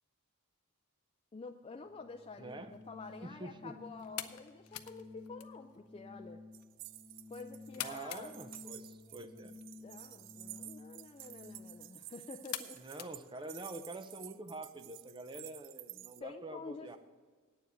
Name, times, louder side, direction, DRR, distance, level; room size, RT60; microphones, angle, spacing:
voice 1, 1.3-6.4 7.3-8.3 9.1-9.2 9.8-12.8 16.2-17.0, left 4 dB, 25° left, 4 dB, 0.4 m, -49 dB
Organ, 1.7-12.0, left 2 dB, 5° right, 1.1 m, -54 dB
voice 2, 2.4-2.7 3.2-3.7 7.8-9.5 12.7-17.0, right 2 dB, 20° right, 9 dB, 0.6 m, -46 dB
sound 1, 2.6-14.0, left 12 dB, 85° left, 0.6 m, -50 dB
Glass shard tinkle texture, 6.5-16.2, right 16 dB, 60° right, 0.3 m, -52 dB
9.0 x 7.1 x 8.2 m, 1.5 s
head